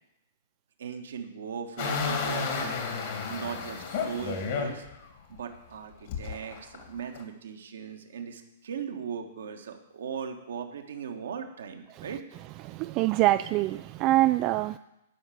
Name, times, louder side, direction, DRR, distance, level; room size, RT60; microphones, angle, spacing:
voice 1, 0.8-2.8 3.3-4.8 5.3-12.2, right 7 dB, 65° right, 5 dB, 1.4 m, -38 dB
sound 1, 1.8-4.9 5.4-5.5 6.1-7.2, left 5 dB, 50° left, 2.4 m, -32 dB
voice 2, 12.6-14.8, right 16 dB, 35° right, 11 dB, 0.3 m, -25 dB
11.0 x 5.9 x 8.3 m, 0.90 s
figure-of-eight pair, 110°, 0 cm